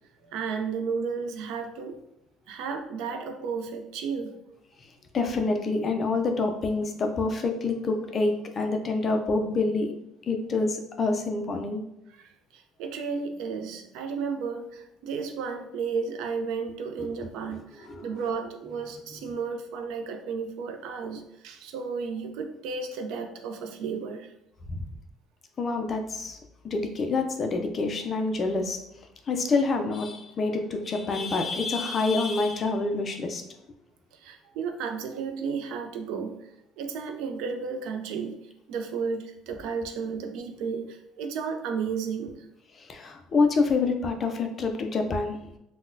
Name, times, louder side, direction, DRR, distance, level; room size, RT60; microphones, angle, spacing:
voice 1, 0.2-2.0 2.5-4.4 12.2-24.3 34.1-36.5 36.8-38.4 38.7-42.5, right 5 dB, 70° right, 6 dB, 0.4 m, -33 dB
voice 2, 5.1-9.9 10.3-11.8 17.0-17.1 17.5-18.1 24.7-24.9 25.6-26.4 26.6-28.8 29.3-33.4 42.8-45.5, left 3 dB, 30° left, 4 dB, 0.4 m, -27 dB
3.8 x 2.1 x 2.5 m, 0.84 s
cardioid pair, 155°, 0 cm